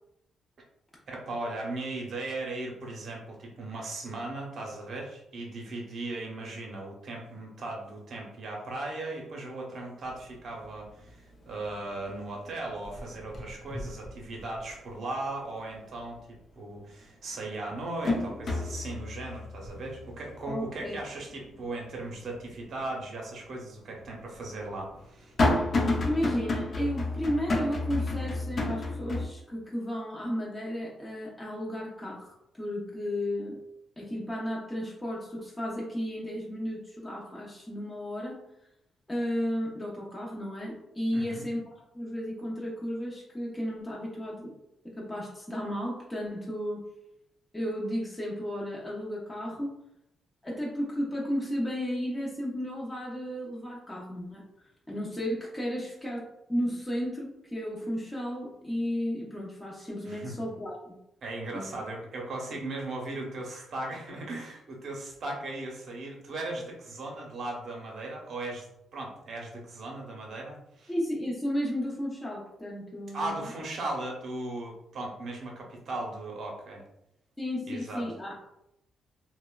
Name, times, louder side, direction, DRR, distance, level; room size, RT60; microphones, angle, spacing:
voice 1, 1.1-25.3 41.1-41.5 60.0-60.4 61.2-68.7 68.9-70.9 73.1-76.8 77.7-78.0, right 2 dB, 60° right, -1 dB, 0.7 m, -37 dB
sound 1, 10.6-11.1 11.5-12.3 12.6-14.8 15.2-15.3 16.8-16.9 17.4-22.5 22.9-23.0 23.9-29.3, left 2 dB, 50° left, 0.5 m, -31 dB
voice 2, 20.5-20.9 26.0-33.6 34.0-38.4 39.1-44.5 44.8-46.8 47.5-49.8 50.4-54.4 54.9-61.0 61.5-61.7 70.9-73.4 77.4-78.4, equal, 15° left, -4 dB, 0.7 m, -33 dB
2.9 x 2.1 x 2.2 m, 0.83 s
cardioid pair, 80°, 0 cm